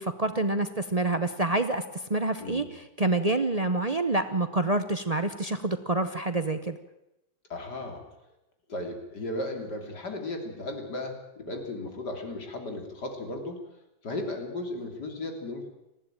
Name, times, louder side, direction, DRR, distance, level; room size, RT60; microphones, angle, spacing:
voice 1, 0.0-6.8, right 2 dB, 45° right, 9 dB, 0.4 m, -27 dB
voice 2, 7.5-8.0 8.7-13.6 14.0-15.7, left 2 dB, 60° left, 4 dB, 3.5 m, -35 dB
20.0 x 15.0 x 9.0 m, 0.89 s
omnidirectional pair, 2.1 m